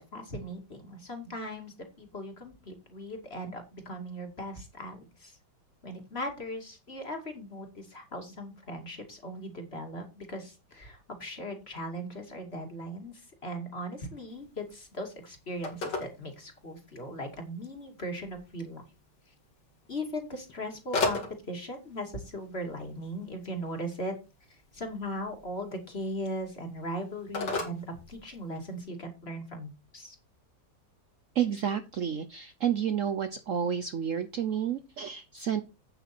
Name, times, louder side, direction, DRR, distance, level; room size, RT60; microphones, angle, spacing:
voice 1, 0.1-5.4 5.8-18.8 19.9-21.2 21.5-24.1 24.7-30.2, equal, 35° left, 4 dB, 2.6 m, -38 dB
Telephone, 14.3-28.8, left 3 dB, 80° left, 3.0 m, -40 dB
voice 2, 31.3-35.6, right 8 dB, 60° right, 10 dB, 0.9 m, -30 dB
8.7 x 8.1 x 4.4 m, 0.28 s
omnidirectional pair, 1.9 m